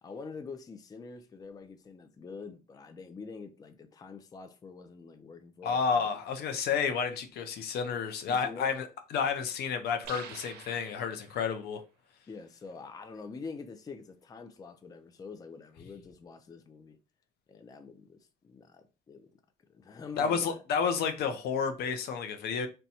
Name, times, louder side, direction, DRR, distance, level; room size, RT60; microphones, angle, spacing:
voice 1, 0.0-6.1 8.3-8.7 12.3-17.0 17.5-19.3 19.7-20.6, left 4 dB, 20° left, 0.4 m, -46 dB
voice 2, 5.6-11.8 20.2-22.7, left 6 dB, 70° left, 0.6 m, -31 dB
sound 1, 10.0-11.6, right 7 dB, 75° right, 0.6 m, -47 dB
2.7 x 2.2 x 4.1 m
cardioid pair, 110°, 17 cm